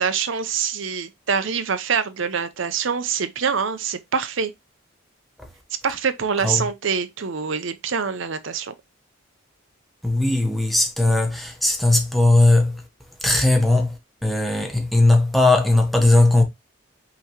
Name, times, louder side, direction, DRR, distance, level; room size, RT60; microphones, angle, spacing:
voice 1, 0.0-4.5 5.8-8.7, right 6 dB, 65° right, 0.6 m, -25 dB
voice 2, 10.0-12.8 13.2-16.4, left 2 dB, ahead, 0.9 m, -18 dB
5.7 x 3.0 x 2.9 m
head